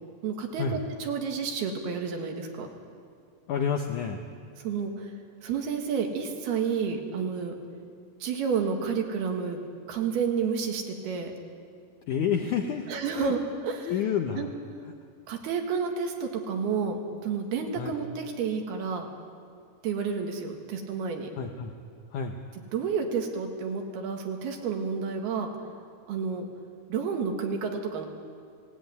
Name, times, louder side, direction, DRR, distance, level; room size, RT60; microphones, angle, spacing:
voice 1, 0.2-2.7 4.6-5.1 5.4-7.6 8.2-9.6 9.9-11.3 12.9-13.4 13.6-13.9 14.4-14.5 15.3-19.1 19.8-21.3 22.7-25.5 26.1-26.5 26.9-28.1, right 6 dB, 80° right, 3 dB, 3.7 m, -30 dB
voice 2, 3.5-4.2 12.1-12.9 13.1-13.3 13.9-14.5 17.8-17.9 21.4-21.7 22.1-22.3, left 7 dB, 70° left, 3 dB, 2.0 m, -29 dB
18.5 x 16.5 x 9.3 m, 2.1 s
omnidirectional pair, 4.5 m